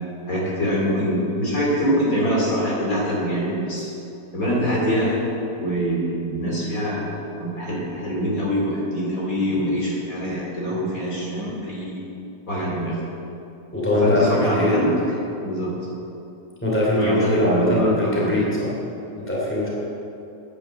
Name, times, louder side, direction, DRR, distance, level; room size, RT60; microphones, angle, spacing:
voice 1, 0.3-3.8 4.3-5.2 5.6-7.1 7.4-12.0 12.5-13.0 14.0-14.9 15.4-15.7 17.0-18.3, equal, 50° left, -5 dB, 3.1 m, -24 dB
voice 2, 13.7-14.8 16.6-18.7 19.2-19.7, left 1 dB, 5° left, -5 dB, 2.9 m, -21 dB
9.9 x 9.6 x 7.3 m, 2.8 s
omnidirectional pair, 1.8 m